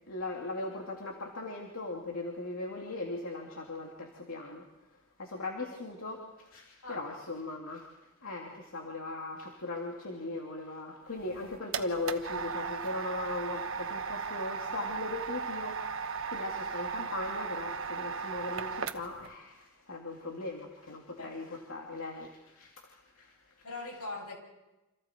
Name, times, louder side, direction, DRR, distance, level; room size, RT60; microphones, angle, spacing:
voice 1, 0.0-4.6 5.2-23.6, left 2 dB, 70° left, -1 dB, 2.9 m, -39 dB
sound 1, 11.2-19.3, right 5 dB, 60° right, 1.2 m, -37 dB
voice 2, 21.2-21.6 23.6-24.4, left 3 dB, 85° left, 2 dB, 7.4 m, -41 dB
28.5 x 27.5 x 4.6 m, 1.0 s
head